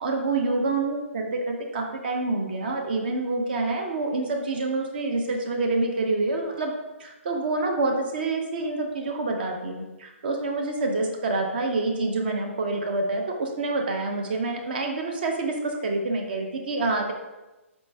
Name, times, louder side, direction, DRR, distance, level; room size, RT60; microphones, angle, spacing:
voice 1, 0.0-6.7 7.0-15.5 15.8-17.1, right 2 dB, 45° right, 2 dB, 0.5 m, -27 dB
4.2 x 3.1 x 3.2 m, 1.1 s
figure-of-eight pair, 130°, 7 cm